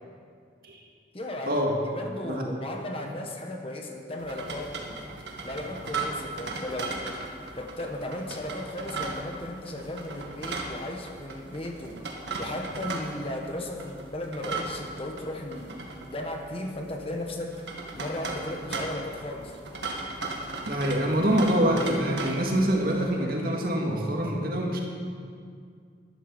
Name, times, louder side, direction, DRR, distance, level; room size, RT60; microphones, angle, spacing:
voice 1, 1.1-1.6 1.9-5.0 5.4-7.0 7.5-12.0 12.4-15.8 16.1-17.6 17.9-19.6, left 1 dB, 30° left, 2 dB, 1.2 m, -35 dB
voice 2, 2.0-2.6 20.7-24.8, equal, 55° right, 0 dB, 2.1 m, -25 dB
sound 1, 4.2-23.1, right 3 dB, 85° right, 1.8 m, -37 dB
12.0 x 11.0 x 7.0 m, 2.2 s
head